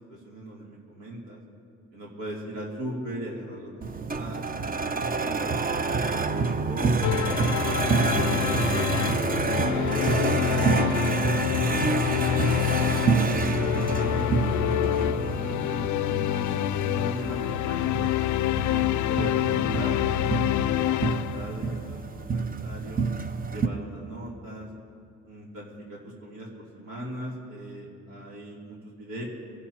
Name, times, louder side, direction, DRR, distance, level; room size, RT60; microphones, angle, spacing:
voice 1, 0.0-1.4 1.9-3.7 4.1-4.8 5.2-7.4 7.7-10.1 10.5-12.6 13.1-14.6 14.8-16.5 16.8-18.1 18.6-23.0 23.5-24.7 25.2-29.2, right 1 dB, 85° right, -5 dB, 3.1 m, -39 dB
sound 1, 3.8-23.7, right 4 dB, 30° right, 0.6 m, -28 dB
sound 2, 7.0-21.8, left 13 dB, 75° left, 0.4 m, -27 dB
25.0 x 11.0 x 2.9 m, 2.3 s
cardioid pair, 90°, 30 cm